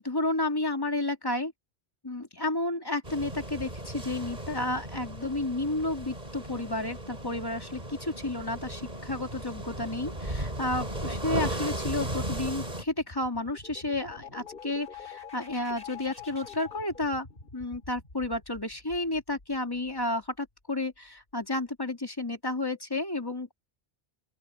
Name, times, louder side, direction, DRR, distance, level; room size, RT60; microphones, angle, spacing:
voice 1, 0.0-1.5 2.0-17.3 17.5-23.5, left 2 dB, 20° left, 2.8 m, -31 dB
sound 1, 3.0-12.8, right 1 dB, 40° right, 5.4 m, -36 dB
sound 2, 12.7-20.3, left 6 dB, 55° left, 3.3 m, -47 dB
open air
omnidirectional pair, 1.1 m